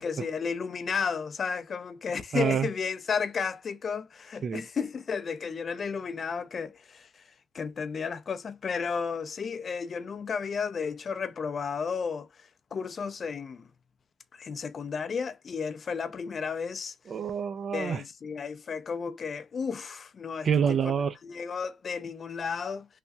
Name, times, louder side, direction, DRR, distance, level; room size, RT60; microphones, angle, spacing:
voice 1, 0.0-7.1 7.5-12.3 12.7-13.7 14.3-16.9 17.7-20.8 21.2-22.9, left 6 dB, 45° left, 0.5 m, -33 dB
voice 2, 2.3-2.7 4.4-4.6 17.1-18.0 20.4-21.1, right 7 dB, 50° right, 0.5 m, -27 dB
3.2 x 2.2 x 2.6 m
cardioid pair, 90°, 0 cm